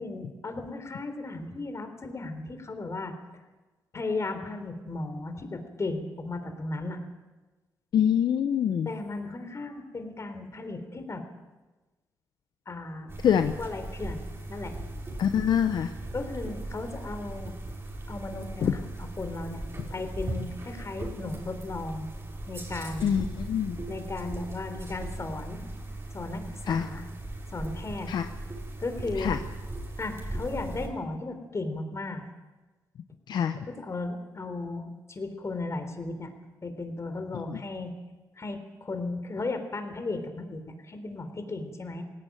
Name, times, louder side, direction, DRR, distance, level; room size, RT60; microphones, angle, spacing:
voice 1, 0.0-3.1 3.9-7.0 8.9-11.2 12.7-13.1 13.6-14.8 16.1-17.5 18.1-18.8 19.2-19.6 19.9-22.1 22.5-23.1 23.9-25.6 26.1-27.1 27.5-28.1 28.8-29.3 30.0-32.2 33.7-36.3 36.6-37.9 38.4-42.0, left 3 dB, 40° left, 7 dB, 3.8 m, -35 dB
voice 2, 7.9-8.9 13.2-13.5 15.2-15.9 18.6-18.7 23.0-23.8 26.7-26.9 28.1-28.3 29.2-29.4 33.3-33.6 37.5-37.6, left 8 dB, 75° left, 8 dB, 0.9 m, -25 dB
sound 1, 13.1-30.9, right 1 dB, 35° right, 5.6 m, -38 dB
18.0 x 17.5 x 9.2 m, 1.2 s
cardioid pair, 65°, 7 cm